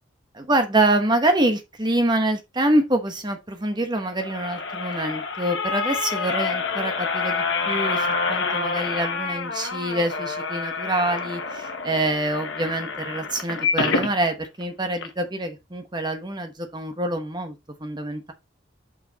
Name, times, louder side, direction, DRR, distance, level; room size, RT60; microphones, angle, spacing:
voice 1, 0.3-18.3, right 1 dB, 20° right, 1.1 m, -25 dB
sound 1, 4.0-14.1 14.6-14.7 15.0-15.1, left 4 dB, 65° left, 1.2 m, -27 dB
5.8 x 5.6 x 4.0 m
head